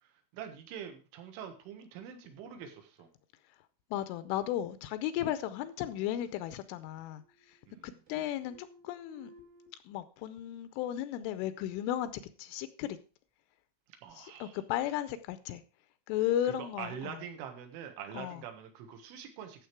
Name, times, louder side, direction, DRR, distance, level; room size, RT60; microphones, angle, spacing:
voice 1, 0.0-3.1 7.7-7.9 14.0-14.6 16.5-19.7, right 8 dB, 75° right, 3.7 m, -45 dB
voice 2, 3.4-9.3 9.8-13.0 14.1-15.6 16.1-17.2 18.1-18.4, left 12 dB, 80° left, 3.0 m, -35 dB
sound 1, 6.3-6.6 6.9-9.7, right 1 dB, 40° right, 1.1 m, -58 dB
13.0 x 7.3 x 4.6 m
omnidirectional pair, 5.9 m